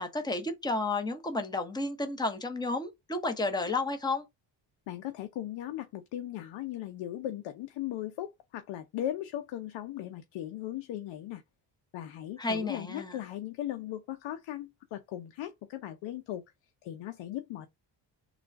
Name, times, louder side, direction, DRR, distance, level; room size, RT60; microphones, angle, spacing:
voice 1, 0.0-4.2 12.4-13.2, left 2 dB, 10° left, 0.9 m, -32 dB
voice 2, 4.9-11.4 11.9-16.4 16.8-17.7, left 12 dB, 80° left, 0.7 m, -38 dB
3.7 x 2.3 x 4.5 m
cardioid pair, 90°, 44 cm